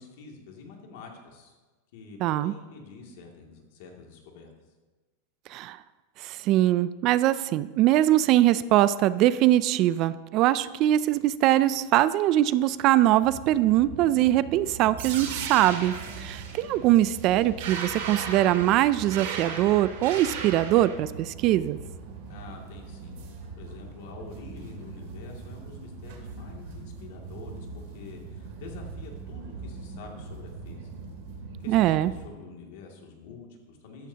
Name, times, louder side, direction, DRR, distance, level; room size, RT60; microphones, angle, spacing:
voice 1, 0.0-1.6 1.9-4.5 22.2-23.2 23.6-30.9 31.6-34.1, left 4 dB, 60° left, 1 dB, 2.4 m, -46 dB
voice 2, 2.2-2.5 5.5-5.8 6.2-21.8 31.7-32.1, right 14 dB, 35° right, 16 dB, 0.3 m, -22 dB
sound 1, 13.2-32.3, right 4 dB, 60° right, 2.7 m, -42 dB
sound 2, 15.0-21.0, right 6 dB, 75° right, 2.2 m, -36 dB
13.5 x 13.0 x 2.9 m, 1.3 s
supercardioid pair, 160°, 0 cm